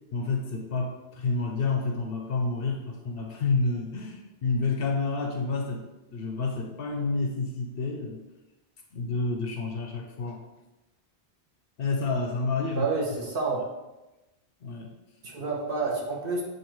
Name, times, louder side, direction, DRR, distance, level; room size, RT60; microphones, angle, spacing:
voice 1, 0.1-5.8 6.1-8.2 8.9-10.4 11.8-12.9 14.6-14.9, left 3 dB, 65° left, 2 dB, 0.7 m, -29 dB
voice 2, 12.7-13.6 15.2-16.4, right 4 dB, 55° right, -2 dB, 1.0 m, -29 dB
6.8 x 2.5 x 3.0 m, 1.0 s
omnidirectional pair, 1.2 m